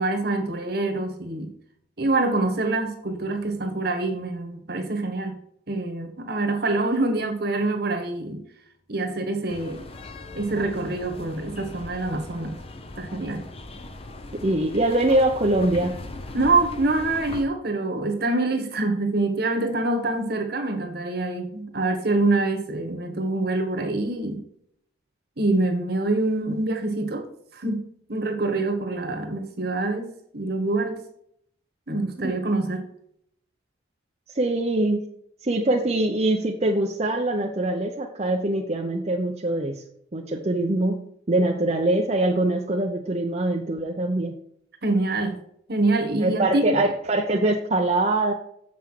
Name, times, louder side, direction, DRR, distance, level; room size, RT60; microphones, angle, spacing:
voice 1, 0.0-1.5 2.0-5.4 5.7-8.4 8.9-9.9 10.3-12.5 13.0-13.4 16.3-24.4 25.4-27.3 27.5-27.8 28.1-31.0 31.9-32.9 44.8-45.4 45.7-46.8, right 2 dB, 55° right, 5 dB, 1.4 m, -25 dB
sound 1, 9.5-17.4, left 2 dB, 30° left, 0.7 m, -39 dB
voice 2, 14.4-16.0 34.3-35.1 35.4-39.8 40.1-41.0 41.3-44.3 46.2-48.3, right 2 dB, 35° right, 1 dB, 0.6 m, -23 dB
7.2 x 5.8 x 4.6 m, 0.70 s
head